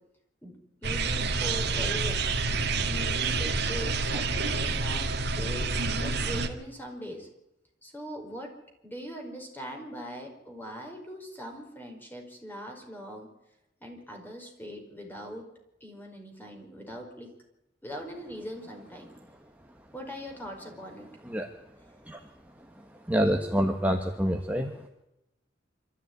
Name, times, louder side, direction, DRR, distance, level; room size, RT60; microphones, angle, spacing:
voice 1, 0.8-2.2 2.8-7.3 7.8-8.5 8.8-13.3 13.8-15.4 15.8-17.3 17.8-19.1 19.9-21.1 21.8-22.0, equal, 10° left, 2 dB, 4.9 m, -41 dB
sound 1, 0.8-6.5, right 3 dB, 60° right, 2.1 m, -28 dB
voice 2, 23.1-24.7, equal, 10° right, 3 dB, 1.5 m, -26 dB
25.5 x 14.0 x 9.5 m, 0.90 s
head